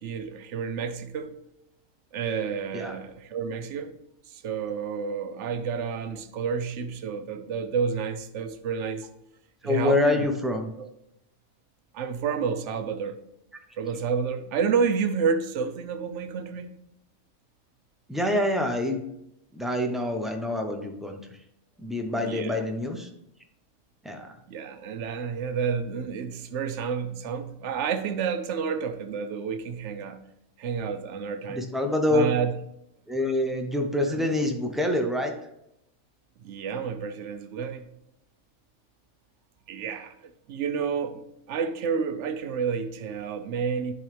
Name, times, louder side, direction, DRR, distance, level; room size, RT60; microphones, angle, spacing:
voice 1, 0.0-1.3 2.1-4.0 4.3-9.1 9.6-10.3 10.8-10.9 11.9-13.2 13.8-16.7 22.2-22.6 24.5-30.2 30.6-31.7 32.1-32.5 34.1-34.2 36.4-37.9 39.7-40.2 40.5-43.9, right 6 dB, 65° right, 0.9 m, -30 dB
voice 2, 9.6-10.7 18.1-19.0 19.5-21.2 21.8-23.1 24.0-24.3 31.5-32.3 33.1-35.3, left 1 dB, ahead, 0.4 m, -26 dB
10.5 x 3.8 x 3.3 m
omnidirectional pair, 1.4 m